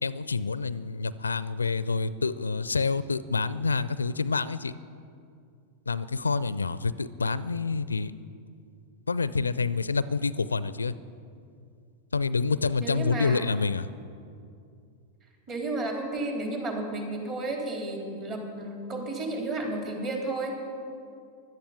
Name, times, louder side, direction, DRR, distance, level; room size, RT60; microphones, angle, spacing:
voice 1, 0.0-4.7 5.9-8.1 9.1-10.9 12.1-13.9, left 4 dB, 75° left, 17 dB, 0.4 m, -27 dB
voice 2, 12.8-13.5 15.5-20.6, right 2 dB, 35° right, 1 dB, 3.7 m, -32 dB
16.0 x 11.5 x 7.3 m, 2.4 s
figure-of-eight pair, 90°, 0 cm